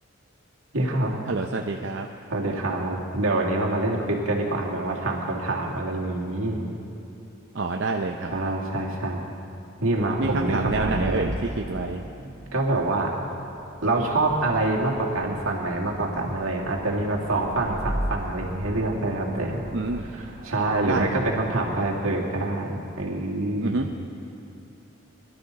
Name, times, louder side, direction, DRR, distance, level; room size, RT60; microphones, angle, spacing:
voice 1, 0.7-1.2 2.3-6.6 8.3-9.2 9.8-11.3 12.5-13.1 13.8-19.7 20.1-23.8, right 2 dB, 75° right, -2 dB, 2.2 m, -26 dB
voice 2, 1.3-2.1 7.5-8.3 10.2-12.0 19.7-20.0 20.8-21.1 23.6-23.9, right 3 dB, 55° right, 2 dB, 0.6 m, -27 dB
sound 1, 9.9-22.4, equal, 35° right, 1.2 m, -37 dB
22.0 x 12.0 x 4.1 m, 2.7 s
head